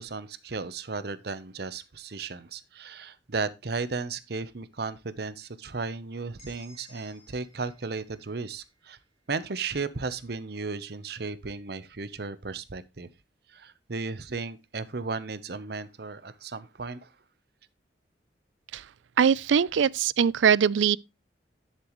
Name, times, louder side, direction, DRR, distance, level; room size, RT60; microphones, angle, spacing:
voice 1, 0.0-9.0 9.3-13.1 13.5-17.1, right 4 dB, 60° right, 0.8 m, -35 dB
sound 1, 6.4-10.2, left 1 dB, 40° left, 3.7 m, -59 dB
voice 2, 19.2-21.0, right 7 dB, 90° right, 0.4 m, -22 dB
10.5 x 7.6 x 3.0 m
head